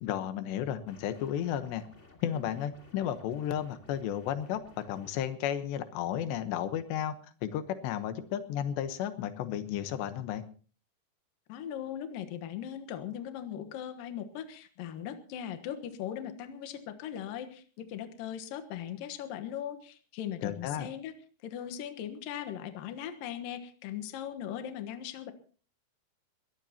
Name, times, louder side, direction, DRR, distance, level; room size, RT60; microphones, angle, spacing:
voice 1, 0.0-1.8 2.2-7.1 7.4-10.4 20.4-20.9, left 10 dB, 90° left, 10 dB, 3.4 m, -33 dB
sound 1, 0.9-5.3, left 2 dB, 20° left, 2.1 m, -57 dB
voice 2, 11.5-21.1 21.4-25.3, left 10 dB, 65° left, 8 dB, 2.8 m, -39 dB
21.5 x 17.0 x 2.9 m, 0.40 s
omnidirectional pair, 4.8 m